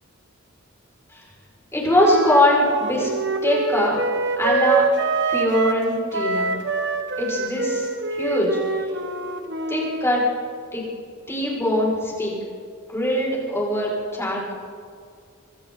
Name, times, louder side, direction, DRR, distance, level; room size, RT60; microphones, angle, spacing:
voice 1, 1.7-3.1 3.4-4.0 4.4-4.8 5.3-6.5 7.2-8.6 9.7-10.2 10.7-10.8 11.3-12.3 12.9-14.5, left 1 dB, 15° left, -4 dB, 5.9 m, -22 dB
Wind instrument woodwind instrument, 1.9-5.9 6.1-10.1, right 3 dB, 55° right, 1.5 m, -25 dB
26.0 x 24.5 x 4.1 m, 2.2 s
head